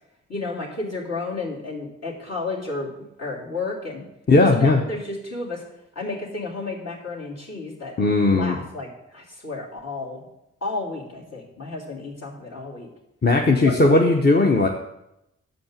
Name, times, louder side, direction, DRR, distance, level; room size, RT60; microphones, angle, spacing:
voice 1, 0.3-4.1 4.5-5.6 5.9-7.9 8.3-10.2 10.6-12.9 13.6-13.7, left 3 dB, 55° left, -4 dB, 2.8 m, -32 dB
voice 2, 4.3-4.8 8.0-8.6 13.2-14.7, left 2 dB, 35° left, 1 dB, 0.9 m, -17 dB
6.8 x 5.3 x 7.2 m, 0.87 s
supercardioid pair, 45°, 30 cm